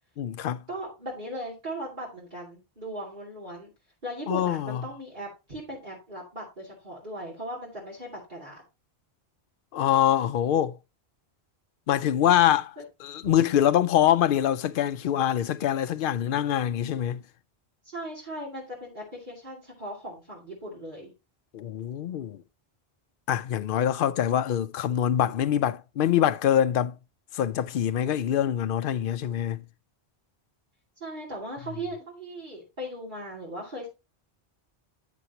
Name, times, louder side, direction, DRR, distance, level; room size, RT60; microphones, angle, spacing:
voice 1, 0.2-0.6 4.3-4.8 9.7-10.7 11.9-12.7 13.0-17.2 21.5-22.4 23.3-27.0 27.3-29.6, left 10 dB, 65° left, 0.7 m, -24 dB
voice 2, 0.7-3.7 4.0-8.6 12.8-12.9 13.2-13.3 17.8-21.1 31.0-33.9, right 1 dB, 50° right, 2.7 m, -38 dB
9.4 x 6.9 x 2.8 m
omnidirectional pair, 1.1 m